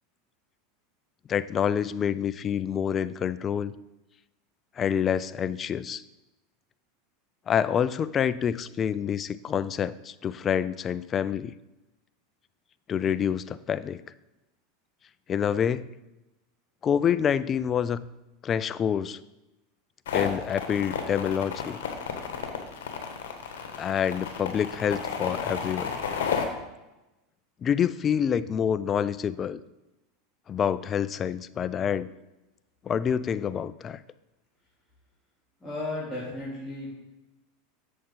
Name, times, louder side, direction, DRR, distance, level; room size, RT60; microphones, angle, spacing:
voice 1, 1.3-3.7 4.8-6.0 7.5-11.6 12.9-14.0 15.3-15.9 16.8-18.0 18.4-19.2 20.1-21.8 23.8-26.0 27.6-29.6 30.5-32.1 32.8-34.0, left 8 dB, 30° left, 16 dB, 0.3 m, -27 dB
sound 1, 20.1-26.4, left 7 dB, 80° left, 1.2 m, -32 dB
voice 2, 35.6-36.9, left 2 dB, 5° left, -11 dB, 3.0 m, -34 dB
7.8 x 6.8 x 3.8 m, 1.0 s
hypercardioid pair, 105°, 0 cm